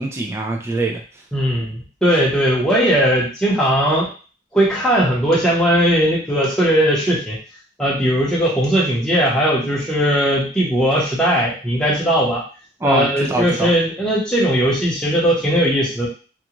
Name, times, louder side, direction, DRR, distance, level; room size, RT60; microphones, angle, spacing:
voice 1, 0.0-1.2 12.8-13.7, right 2 dB, 15° right, 1 dB, 0.3 m, -23 dB
voice 2, 1.3-4.1 4.5-7.4 7.8-12.4 12.8-16.1, equal, 5° left, -6 dB, 0.8 m, -18 dB
2.4 x 2.3 x 2.9 m, 0.36 s
head